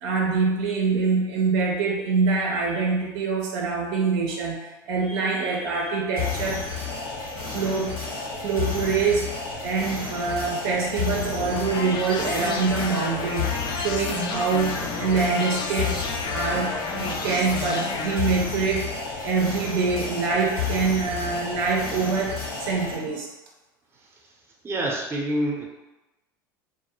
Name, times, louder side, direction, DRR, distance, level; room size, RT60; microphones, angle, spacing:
voice 1, 0.0-6.6 7.5-7.9 8.4-9.3 9.6-16.1 16.3-18.9 19.2-22.3 22.6-23.3, right 4 dB, 70° right, -1 dB, 0.5 m, -25 dB
sound 1, 6.2-23.0, left 5 dB, 70° left, 1.1 m, -32 dB
sound 2, 11.3-18.1, left 4 dB, 40° left, 0.4 m, -32 dB
voice 2, 24.6-25.7, right 1 dB, 20° right, -1 dB, 0.6 m, -26 dB
2.2 x 2.1 x 3.0 m, 1.0 s
hypercardioid pair, 85°, 11 cm